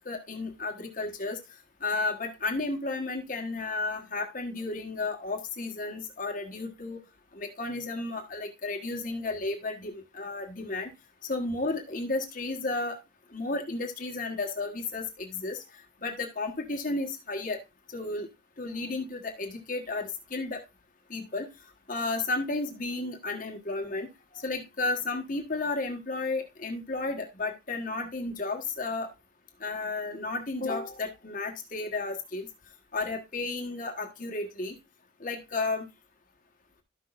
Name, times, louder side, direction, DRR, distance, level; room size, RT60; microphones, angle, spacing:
voice 1, 0.0-1.4 1.8-7.0 7.3-10.9 11.3-13.0 13.3-15.6 16.0-17.6 17.9-18.3 18.6-20.6 21.1-21.5 21.9-24.1 24.3-29.1 29.6-32.5 32.9-34.8 35.2-35.8, left 3 dB, 45° left, 3 dB, 1.3 m, -33 dB
13.0 x 6.1 x 2.5 m, 0.24 s
head